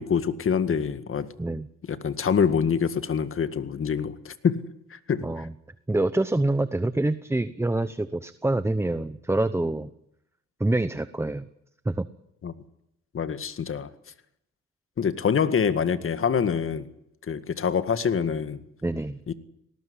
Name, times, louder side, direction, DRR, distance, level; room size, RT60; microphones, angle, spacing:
voice 1, 0.0-1.3 1.9-4.6 4.9-5.5 12.4-12.5 13.1-13.9 15.0-16.9 17.3-18.6 19.3-19.4, left 7 dB, 45° left, 11 dB, 1.9 m, -25 dB
voice 2, 5.2-5.5 5.9-9.9 10.6-11.5 11.8-12.1 18.8-19.2, right 2 dB, 10° right, 13 dB, 0.9 m, -26 dB
19.5 x 18.5 x 9.8 m, 0.78 s
cardioid pair, 90°, 30 cm